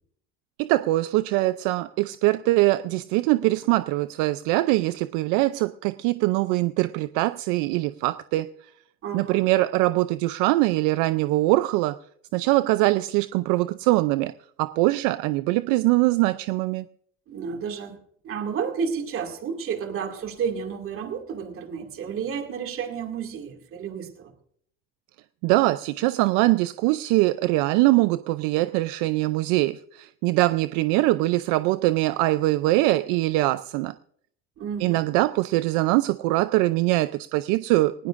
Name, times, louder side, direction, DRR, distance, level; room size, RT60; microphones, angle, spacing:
voice 1, 0.6-8.5 9.1-12.0 12.3-14.3 14.6-16.9 25.4-33.9 34.8-38.1, right 18 dB, 75° right, 14 dB, 0.5 m, -22 dB
voice 2, 9.0-9.4 17.3-18.0 18.2-24.3 34.6-35.0, right 6 dB, 45° right, 5 dB, 2.3 m, -31 dB
19.5 x 17.5 x 2.5 m, 0.65 s
cardioid pair, 125°, 31 cm